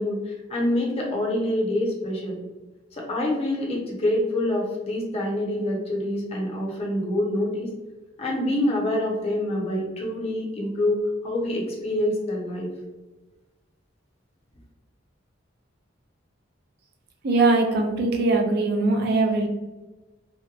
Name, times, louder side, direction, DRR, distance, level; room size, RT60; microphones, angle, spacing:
voice 1, 0.0-2.4 2.9-7.7 8.2-12.7, left 1 dB, 30° left, -3 dB, 0.6 m, -26 dB
voice 2, 17.2-19.5, right 3 dB, 55° right, 3 dB, 0.4 m, -21 dB
2.8 x 2.1 x 2.2 m, 1.1 s
head